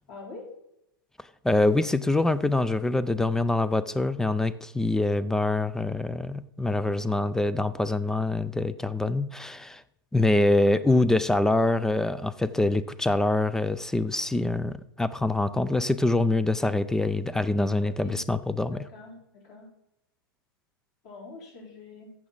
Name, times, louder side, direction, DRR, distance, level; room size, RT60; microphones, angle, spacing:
voice 1, 0.1-0.5 17.7-18.2 18.6-19.7 21.0-22.1, left 3 dB, 45° left, -1 dB, 3.9 m, -45 dB
voice 2, 1.4-9.8 10.1-18.8, left 2 dB, 5° left, 16 dB, 0.3 m, -25 dB
14.5 x 6.0 x 3.9 m, 0.80 s
figure-of-eight pair, 100°, 12 cm